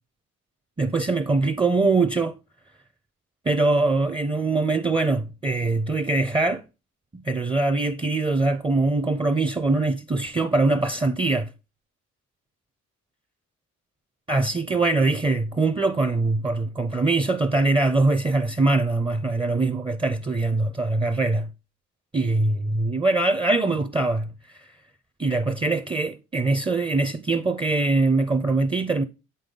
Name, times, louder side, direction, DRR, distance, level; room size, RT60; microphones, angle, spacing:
voice 1, 0.8-2.4 3.4-6.6 7.1-11.5 14.3-21.5 22.1-24.7 25.2-29.0, right 3 dB, 15° right, 0.5 m, -23 dB
7.8 x 5.4 x 3.8 m
cardioid pair, 90°, 30 cm